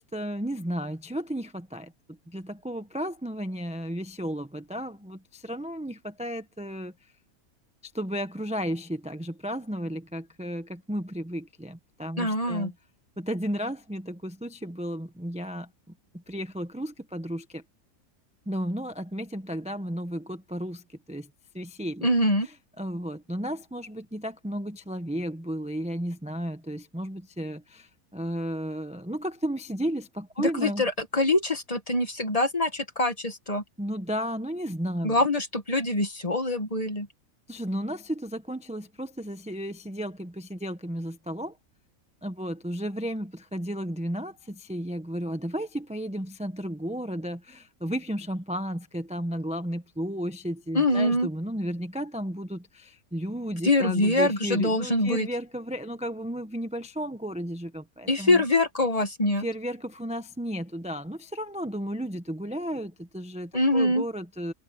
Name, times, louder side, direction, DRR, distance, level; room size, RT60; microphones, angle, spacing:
voice 1, 0.0-6.9 7.8-12.7 13.2-15.7 16.1-17.6 18.5-21.3 21.5-22.1 22.8-30.8 33.8-35.2 37.5-41.6 42.2-58.4 59.4-64.5, equal, 5° right, 0.9 m, -33 dB
voice 2, 12.2-12.7 22.0-22.5 30.4-33.6 35.0-37.1 50.7-51.3 53.6-55.3 58.1-59.4 63.5-64.1, left 1 dB, 25° left, 1.4 m, -24 dB
omnidirectional pair, 1.5 m